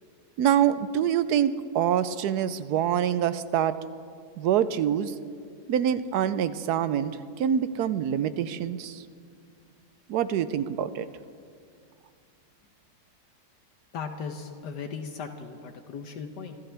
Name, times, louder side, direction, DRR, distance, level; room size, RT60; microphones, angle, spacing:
voice 1, 0.4-3.7 4.4-5.1 5.7-9.0 10.1-11.1, right 9 dB, 75° right, 14 dB, 1.1 m, -25 dB
voice 2, 13.9-16.6, left 5 dB, 75° left, 6 dB, 1.5 m, -37 dB
27.0 x 14.5 x 3.4 m, 2.2 s
omnidirectional pair, 1.9 m